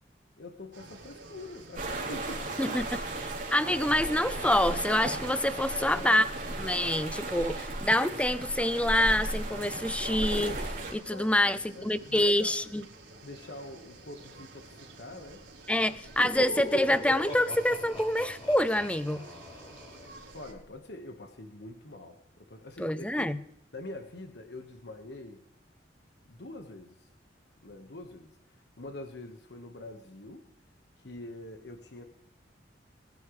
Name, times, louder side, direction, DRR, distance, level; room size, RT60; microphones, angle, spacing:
voice 1, 0.4-2.9 5.6-6.2 11.1-12.5 13.2-15.4 16.0-16.1 20.3-23.4 23.7-25.4 26.3-27.1 27.6-28.4 28.8-30.4 31.0-32.1, left 2 dB, 65° left, 5 dB, 1.3 m, -45 dB
sound 1, 0.7-20.5, right 3 dB, 75° right, 4.1 m, -51 dB
sound 2, 1.8-10.9, right 2 dB, 45° right, 3.5 m, -35 dB
voice 2, 3.5-6.3 6.6-10.7 10.9-12.8 15.7-19.2 22.8-23.4, left 1 dB, 5° left, 14 dB, 0.5 m, -26 dB
Laughter, 15.9-20.6, equal, 30° left, 6.2 m, -40 dB
22.5 x 10.5 x 3.2 m, 0.76 s
head